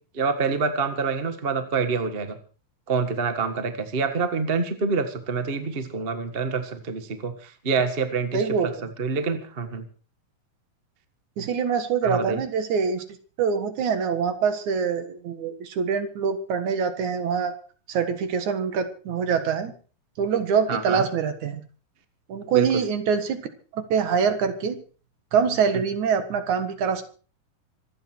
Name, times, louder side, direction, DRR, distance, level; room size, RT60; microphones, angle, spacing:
voice 1, 0.1-2.4 2.9-9.9 12.0-12.4 20.7-21.1 22.5-22.8, right 5 dB, 35° right, 8 dB, 0.9 m, -26 dB
voice 2, 8.3-8.7 11.4-13.0 13.4-17.5 17.9-19.7 20.2-21.6 22.3-23.4 23.7-24.8 25.3-27.0, right 6 dB, 65° right, 9 dB, 2.9 m, -24 dB
25.0 x 9.6 x 4.6 m, 0.39 s
omnidirectional pair, 3.9 m